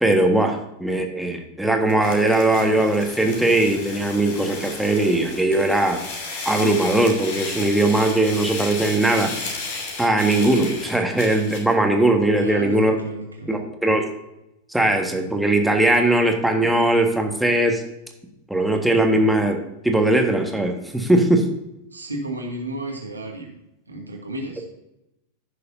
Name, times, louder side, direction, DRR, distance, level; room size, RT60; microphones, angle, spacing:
voice 1, 0.0-6.0 6.4-9.3 10.0-13.0 13.5-14.1 14.7-17.8 18.5-21.4, right 1 dB, ahead, 2 dB, 1.6 m, -20 dB
sound 1, 1.9-11.7, left 3 dB, 50° left, 2.8 m, -34 dB
voice 2, 12.4-13.5 21.9-23.5 23.9-24.6, right 2 dB, 80° right, 1 dB, 2.2 m, -32 dB
15.5 x 6.7 x 2.7 m, 0.87 s
figure-of-eight pair, 90°, 0 cm